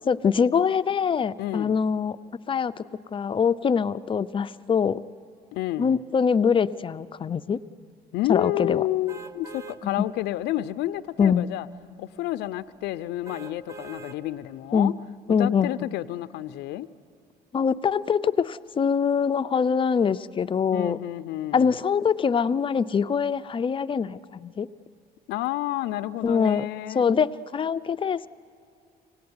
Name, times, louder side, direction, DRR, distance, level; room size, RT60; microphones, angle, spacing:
voice 1, 0.0-2.2 2.5-2.8 3.1-5.0 5.8-7.6 8.3-8.8 10.0-10.1 11.2-11.5 14.7-14.9 15.3-15.7 17.5-21.0 21.5-24.7 26.2-28.3, left 6 dB, 30° left, 13 dB, 0.5 m, -24 dB
voice 2, 1.4-1.7 5.5-6.0 8.1-11.7 12.0-14.9 15.4-16.9 20.7-21.7 25.3-27.0, left 15 dB, 85° left, 13 dB, 0.6 m, -30 dB
sound 1, 9.1-9.8 10.3-10.4 13.2-14.2 14.7-14.8, right 4 dB, 15° right, 1.2 m, -42 dB
25.0 x 18.0 x 9.6 m, 2.5 s
cardioid pair, 110°, 17 cm